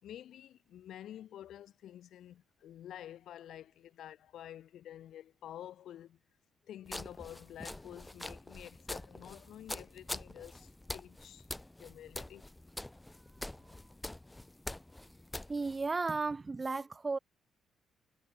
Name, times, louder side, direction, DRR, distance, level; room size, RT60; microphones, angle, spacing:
voice 1, 0.0-6.2 6.6-11.5 11.8-12.4, left 11 dB, 75° left, 4.5 m, -49 dB
sound 1, 6.9-15.9, left 1 dB, 10° left, 1.3 m, -45 dB
voice 2, 15.5-17.2, right 3 dB, 25° right, 1.0 m, -34 dB
cardioid pair, 90°, 0 cm